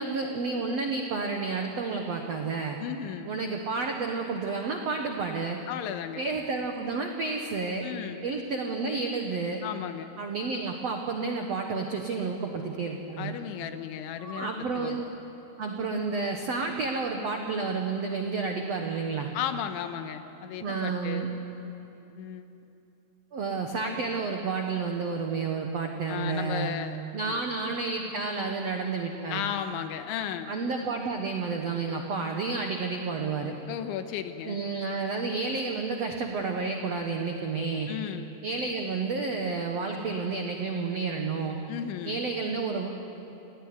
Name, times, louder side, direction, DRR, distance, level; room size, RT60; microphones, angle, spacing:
voice 1, 0.0-2.8 3.3-5.6 6.2-7.9 8.2-9.6 10.2-13.4 14.2-15.1 15.6-19.3 20.6-21.3 23.3-26.7 27.1-29.4 30.5-33.6 34.4-37.9 38.4-41.6 42.0-42.9, right 4 dB, 75° right, 2 dB, 1.4 m, -30 dB
voice 2, 2.8-3.3 5.7-6.3 7.8-8.2 9.6-10.1 13.2-15.0 19.3-21.3 22.1-22.5 26.1-27.0 27.2-27.4 29.3-30.5 33.7-34.6 37.9-38.3 41.7-42.2, left 9 dB, 90° left, 8 dB, 3.6 m, -35 dB
28.5 x 18.0 x 9.7 m, 2.9 s
omnidirectional pair, 5.3 m